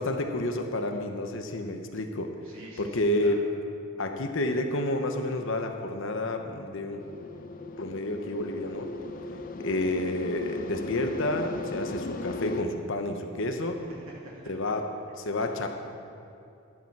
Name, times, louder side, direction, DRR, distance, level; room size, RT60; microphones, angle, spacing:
voice 1, 0.0-2.3 2.8-3.4 4.0-7.0 7.8-8.9 9.6-13.8 14.5-14.8 15.2-15.7, left 1 dB, 60° left, 5 dB, 1.0 m, -30 dB
voice 2, 2.4-3.4 13.5-14.5 15.4-15.5, right 1 dB, 70° right, -4 dB, 2.8 m, -48 dB
sound 1, 7.0-12.6, left 2 dB, 40° left, 0.6 m, -37 dB
12.0 x 11.5 x 4.7 m, 2.6 s
head